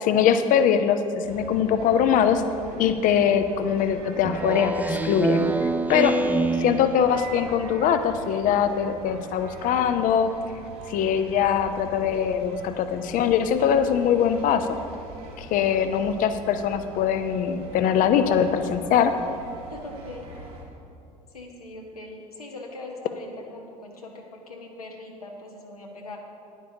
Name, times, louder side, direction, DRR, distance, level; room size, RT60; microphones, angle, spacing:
voice 1, 0.0-2.4 2.8-6.2 6.6-10.3 10.9-14.7 15.4-19.1, left 8 dB, 45° left, 9 dB, 0.7 m, -22 dB
sound 1, 1.2-20.6, right 2 dB, 70° right, 2.0 m, -43 dB
Speech synthesizer, 4.2-7.3, right 3 dB, 10° right, 0.5 m, -25 dB
voice 2, 18.2-18.5 19.7-20.3 21.3-26.2, left 2 dB, 80° left, 0 dB, 1.1 m, -41 dB
14.0 x 10.5 x 2.8 m, 2.6 s
figure-of-eight pair, 60°, 19 cm